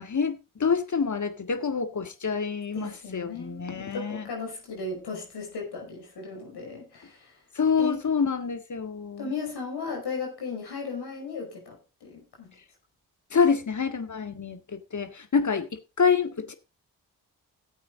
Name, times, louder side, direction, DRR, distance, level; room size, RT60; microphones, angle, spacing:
voice 1, 0.0-4.3 7.6-9.3 13.3-16.5, left 5 dB, 45° left, 1.8 m, -27 dB
voice 2, 2.7-7.4 7.8-8.0 9.2-12.5, left 4 dB, 75° left, 5.4 m, -36 dB
13.5 x 8.3 x 3.7 m
supercardioid pair, 45°, 40 cm